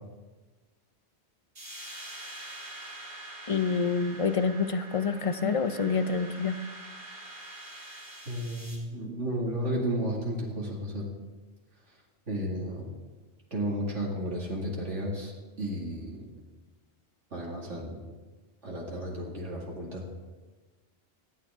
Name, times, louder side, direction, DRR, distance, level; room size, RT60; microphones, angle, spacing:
sound 1, 1.6-8.8, right 1 dB, 55° right, 4.1 m, -45 dB
voice 1, 3.5-6.6, left 5 dB, 35° left, 10 dB, 0.6 m, -27 dB
voice 2, 8.3-11.1 12.3-12.8 13.5-15.3 15.6-16.3 17.3-18.0 18.6-20.0, right 1 dB, 85° right, -3 dB, 2.8 m, -33 dB
26.5 x 9.3 x 3.6 m, 1.3 s
omnidirectional pair, 1.2 m